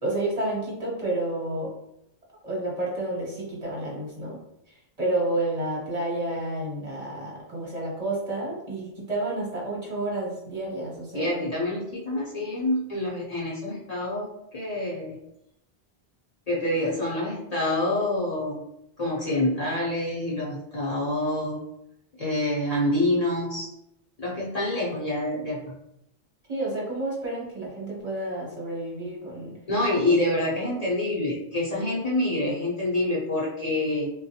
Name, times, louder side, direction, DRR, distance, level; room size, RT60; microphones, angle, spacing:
voice 1, 0.0-1.7 2.4-4.4 5.0-11.4 26.5-29.6 30.0-30.1 30.6-30.8, right 2 dB, 40° right, -5 dB, 0.9 m, -30 dB
voice 2, 11.1-15.1 16.5-18.6 19.0-21.6 22.2-23.7 24.2-25.7 29.7-34.1, left 1 dB, 45° left, -6 dB, 0.7 m, -27 dB
3.5 x 2.2 x 2.7 m, 0.80 s
omnidirectional pair, 1.0 m